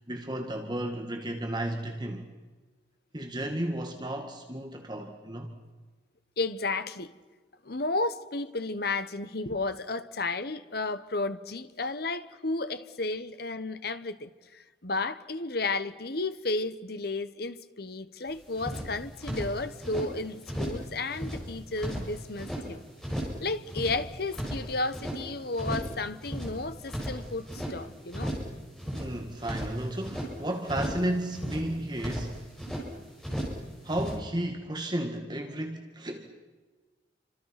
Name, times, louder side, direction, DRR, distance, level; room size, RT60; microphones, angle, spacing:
voice 1, 0.0-2.2 3.1-5.5 28.9-32.4 33.8-36.2, right 1 dB, 25° right, 2.0 m, -33 dB
voice 2, 6.4-7.1 7.6-22.8 23.4-28.3, left 3 dB, 55° left, 1.3 m, -33 dB
sound 1, 18.3-18.4 18.5-20.1 20.4-20.9 21.1-22.6 23.0-23.4 23.7-25.2 25.5-26.0 26.2-27.7 28.1-28.5 28.8-30.3 30.7-31.1 31.3-32.8 33.2-33.6 33.9-34.2, equal, 5° left, 6.8 m, -35 dB
29.0 x 26.0 x 6.0 m
head